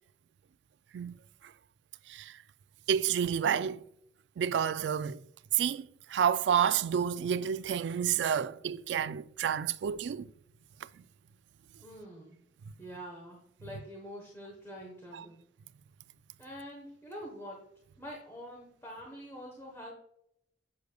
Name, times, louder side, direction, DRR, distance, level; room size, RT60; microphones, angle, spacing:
voice 1, 2.9-3.8 4.4-5.2 5.5-10.3 15.1-15.2, right 8 dB, 80° right, 0.3 m, -29 dB
voice 2, 11.8-12.4 12.8-15.4 16.4-17.6 18.0-19.9, equal, 15° left, 1.1 m, -45 dB
8.0 x 6.7 x 2.3 m
head